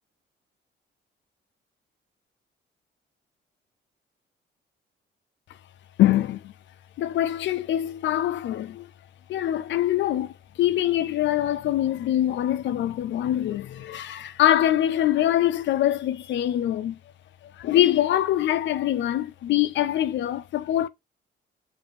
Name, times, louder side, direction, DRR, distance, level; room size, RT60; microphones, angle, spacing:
voice 1, 6.0-6.5 7.0-8.9 9.3-17.0 17.6-20.9, left 12 dB, 70° left, 0.4 m, -24 dB
5.0 x 2.7 x 2.5 m
cardioid pair, 90°, 20 cm